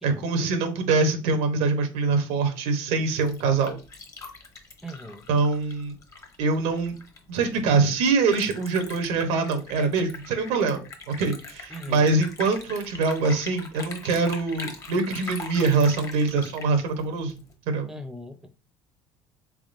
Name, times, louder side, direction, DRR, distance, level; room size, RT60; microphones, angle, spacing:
voice 1, 0.0-3.8 5.3-6.0 6.4-6.9 7.3-10.8 11.1-17.4 17.7-17.9, right 4 dB, 75° right, 0.8 m, -24 dB
Liquid, 3.0-17.5, left 3 dB, 30° left, 0.9 m, -41 dB
voice 2, 4.8-5.2 11.7-12.1 17.9-18.5, equal, 5° right, 0.6 m, -39 dB
3.5 x 3.5 x 2.5 m
supercardioid pair, 85°, 12 cm